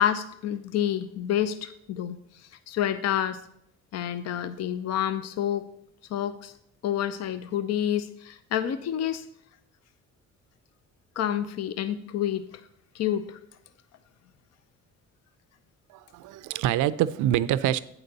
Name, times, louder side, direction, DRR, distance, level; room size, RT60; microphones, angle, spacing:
voice 1, 0.0-3.4 3.9-5.7 6.1-6.5 6.8-9.2 11.2-12.4 12.9-13.4, left 10 dB, 60° left, 12 dB, 0.6 m, -28 dB
voice 2, 15.9-17.8, right 12 dB, 85° right, 16 dB, 0.5 m, -25 dB
8.7 x 4.0 x 6.6 m, 0.72 s
cardioid pair, 90°, 30 cm